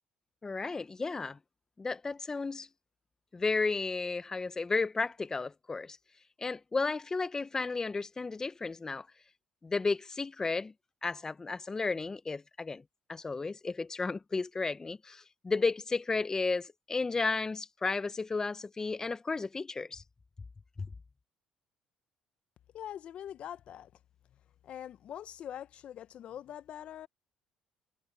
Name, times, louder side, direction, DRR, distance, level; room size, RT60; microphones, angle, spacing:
voice 1, 0.4-1.4 1.8-2.7 3.3-6.0 6.4-9.1 9.6-10.7 11.0-12.8 13.1-20.0 20.8-20.9, left 4 dB, 25° left, 0.9 m, -33 dB
voice 2, 22.7-23.9 24.6-27.1, left 10 dB, 60° left, 0.9 m, -43 dB
supercardioid pair, 65°, 2 cm